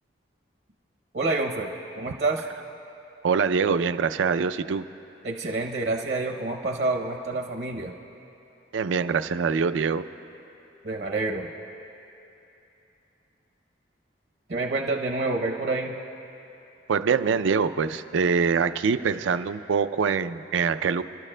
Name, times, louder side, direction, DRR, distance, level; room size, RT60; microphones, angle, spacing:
voice 1, 1.1-2.4 5.2-7.9 10.8-11.5 14.5-15.9, right 3 dB, 60° right, 2 dB, 0.7 m, -28 dB
voice 2, 3.2-4.9 8.7-10.0 16.9-21.0, right 5 dB, 85° right, 12 dB, 0.4 m, -24 dB
29.5 x 12.5 x 2.2 m, 2.8 s
head